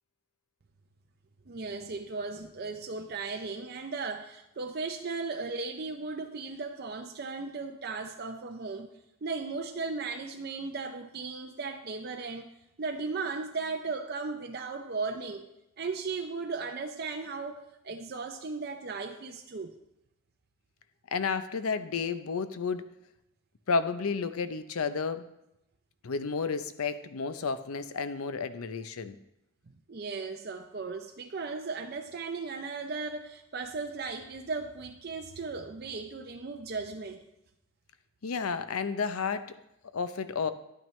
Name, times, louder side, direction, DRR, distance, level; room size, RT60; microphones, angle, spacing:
voice 1, 1.5-8.9 9.2-12.5 12.8-15.5 15.8-19.7 29.9-37.2, right 4 dB, 45° right, 4 dB, 0.5 m, -36 dB
voice 2, 21.1-22.9 23.7-25.2 26.0-29.2 38.2-39.5 39.9-40.5, left 5 dB, 85° left, 12 dB, 0.6 m, -31 dB
10.5 x 9.0 x 3.2 m, 0.85 s
head